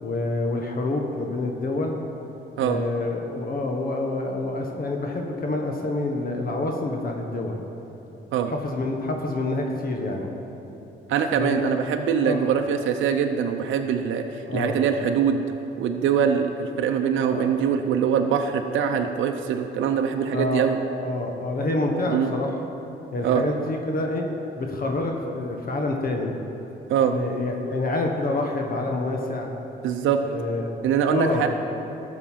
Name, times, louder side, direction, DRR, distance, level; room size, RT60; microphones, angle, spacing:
voice 1, 0.0-2.0 2.6-7.6 8.5-10.3 11.3-11.7 12.2-12.5 14.5-14.8 17.3-17.5 20.3-20.7 21.0-22.6 23.1-24.3 24.6-26.3 27.1-29.5 30.2-30.7 31.1-31.5, left 2 dB, 45° left, 2 dB, 1.3 m, -27 dB
voice 2, 11.1-15.4 15.8-20.8 22.1-22.3 23.2-23.5 26.9-27.2 29.8-30.2 30.8-31.5, right 7 dB, 75° right, 5 dB, 0.6 m, -23 dB
13.0 x 6.5 x 5.8 m, 3.0 s
cardioid pair, 90°, 20 cm